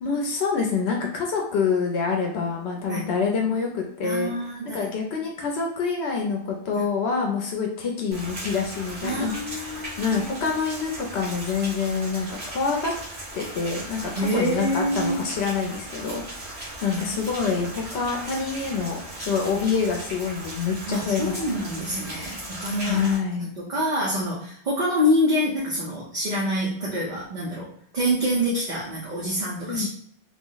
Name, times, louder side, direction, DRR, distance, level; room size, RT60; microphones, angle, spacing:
voice 1, 0.0-4.3 4.6-12.9 13.3-21.4 22.8-23.5 29.7-29.9, left 5 dB, 85° left, 1 dB, 0.9 m, -26 dB
voice 2, 4.0-5.1 6.8-6.9 9.0-10.5 14.2-15.3 16.9-17.0 20.9-23.0 23.4-27.7 27.9-29.9, equal, 45° right, -6 dB, 0.8 m, -26 dB
Rain, 8.1-23.2, right 1 dB, 80° right, 1.7 m, -37 dB
3.4 x 2.0 x 3.8 m, 0.64 s
omnidirectional pair, 1.1 m